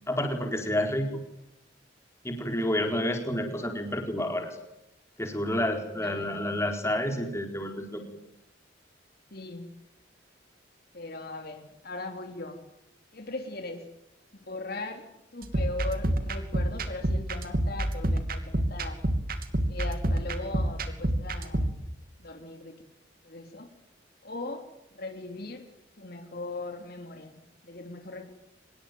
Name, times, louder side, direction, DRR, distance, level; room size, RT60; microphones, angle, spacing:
voice 1, 0.1-1.1 2.2-4.6 5.2-8.0, left 1 dB, 15° left, 4 dB, 4.4 m, -29 dB
voice 2, 5.9-6.6 9.3-9.7 10.9-12.6 13.1-13.9 14.3-19.0 19.7-21.7 22.2-22.8 23.2-23.7 24.2-25.7 26.0-28.3, left 2 dB, 55° left, 5 dB, 3.5 m, -39 dB
sound 1, 15.4-21.8, right 1 dB, 50° right, 3.0 m, -29 dB
25.5 x 22.0 x 9.4 m, 0.85 s
head